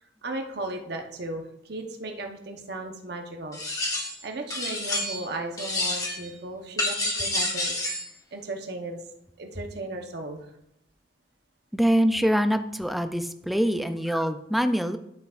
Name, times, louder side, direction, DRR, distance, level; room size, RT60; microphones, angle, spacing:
voice 1, 0.2-3.6 4.0-8.0 8.3-9.0 9.4-10.5, right 2 dB, 65° right, 3 dB, 1.0 m, -36 dB
sound 1, 3.5-4.2 4.5-5.3 5.6-6.3 6.8-8.1, left 1 dB, 20° left, 1.2 m, -29 dB
voice 2, 11.7-15.0, equal, ahead, 9 dB, 0.4 m, -24 dB
11.5 x 5.9 x 2.5 m, 0.83 s
head